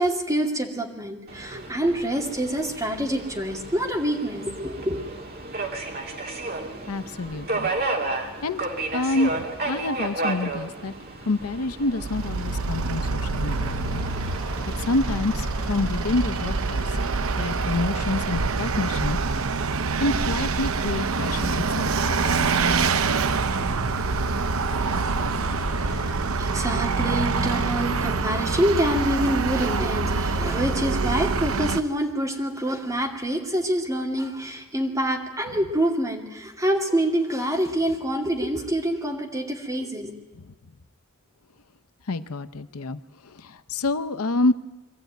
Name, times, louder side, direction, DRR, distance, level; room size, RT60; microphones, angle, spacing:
voice 1, 0.0-5.0 26.4-40.1, right 1 dB, 15° right, 1 dB, 2.5 m, -26 dB
Subway metro underground, 1.3-14.9, right 2 dB, 45° right, 2.6 m, -33 dB
voice 2, 6.9-7.7 8.4-8.6 8.9-10.9 11.3-14.0 14.8-16.9 17.4-19.2 20.0-22.7 24.9-25.4 40.4-40.5 42.1-44.5, left 2 dB, 75° left, 12 dB, 0.7 m, -28 dB
sound 1, 11.4-26.2, equal, 20° left, 5.9 m, -40 dB
Vehicle, 12.0-31.8, right 4 dB, 65° right, 0.7 m, -25 dB
23.0 x 14.5 x 9.2 m, 1.2 s
head